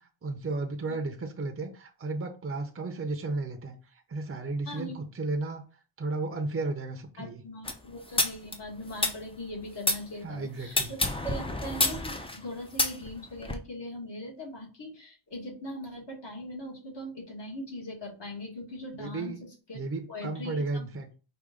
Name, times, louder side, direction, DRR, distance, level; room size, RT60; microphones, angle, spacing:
voice 1, 0.0-5.6 6.0-7.4 10.2-10.9 19.0-19.4 19.7-21.1, right 3 dB, 30° right, 5 dB, 0.6 m, -34 dB
voice 2, 4.6-5.1 7.2-19.8 20.1-20.9, left 1 dB, 55° left, -2 dB, 1.9 m, -40 dB
sound 1, 7.6-10.0 10.7-13.6, left 2 dB, 10° left, 0.5 m, -29 dB
4.9 x 2.4 x 3.6 m, 0.35 s
wide cardioid pair, 105°, 48 cm